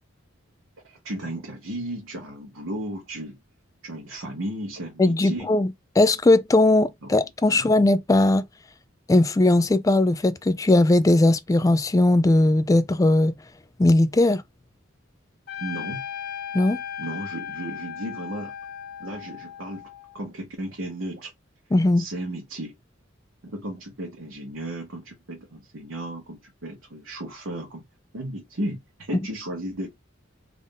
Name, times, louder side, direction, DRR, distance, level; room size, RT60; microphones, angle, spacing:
voice 1, 0.8-3.4 3.8-5.5 7.0-7.1 7.5-7.7 15.6-16.0 17.0-18.5 19.0-19.9 20.1-21.3 22.0-22.7 23.4-27.8 28.1-29.9, right 1 dB, 80° right, 1.1 m, -34 dB
voice 2, 5.0-5.7 6.0-8.4 9.1-13.3 13.8-14.4 16.5-16.8 21.7-22.1, left 2 dB, 15° left, 0.3 m, -19 dB
Trumpet, 15.5-20.2, left 8 dB, 50° left, 1.1 m, -36 dB
3.5 x 2.6 x 3.7 m
head